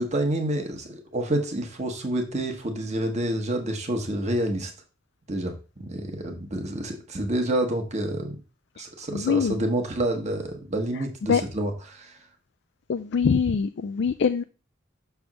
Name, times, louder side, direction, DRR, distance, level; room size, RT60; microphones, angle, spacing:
voice 1, 0.0-4.7 5.3-8.4 8.8-12.2, right 1 dB, 35° right, 4 dB, 1.2 m, -28 dB
voice 2, 9.1-9.6 11.3-11.4 12.9-14.4, left 6 dB, 55° left, 9 dB, 0.4 m, -23 dB
6.4 x 3.4 x 6.1 m, 0.33 s
head